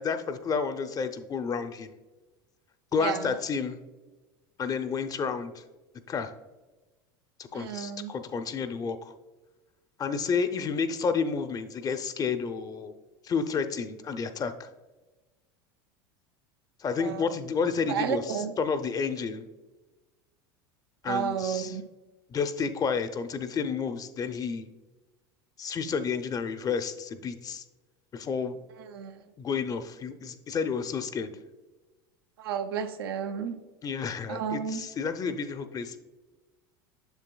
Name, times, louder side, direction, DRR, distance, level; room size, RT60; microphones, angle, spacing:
voice 1, 0.0-1.9 2.9-3.8 4.6-5.6 6.1-6.3 7.4-9.1 10.0-12.9 13.2-14.7 16.8-19.5 21.0-21.8 22.3-24.7 25.6-27.6 28.1-28.6 29.4-31.4 33.8-36.0, left 5 dB, 30° left, 9 dB, 0.6 m, -30 dB
voice 2, 3.0-3.4 7.5-8.1 17.0-17.4 17.9-18.5 21.1-21.8 28.8-29.2 32.4-33.6 34.3-34.8, right 8 dB, 85° right, 6 dB, 0.6 m, -32 dB
8.0 x 6.8 x 2.3 m, 1.2 s
hypercardioid pair, 95°, 12 cm